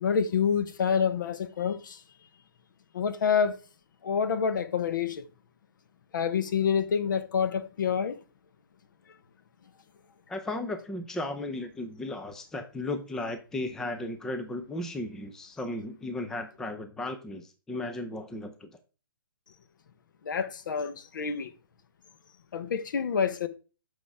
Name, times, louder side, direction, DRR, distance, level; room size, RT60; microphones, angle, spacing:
voice 1, 0.0-2.0 2.9-3.6 4.0-5.2 6.1-8.2 20.2-21.5 22.5-23.5, left 7 dB, 60° left, 1.0 m, -27 dB
voice 2, 10.3-18.7, left 2 dB, 5° left, 0.5 m, -35 dB
8.7 x 6.3 x 3.5 m
hypercardioid pair, 155°, 12 cm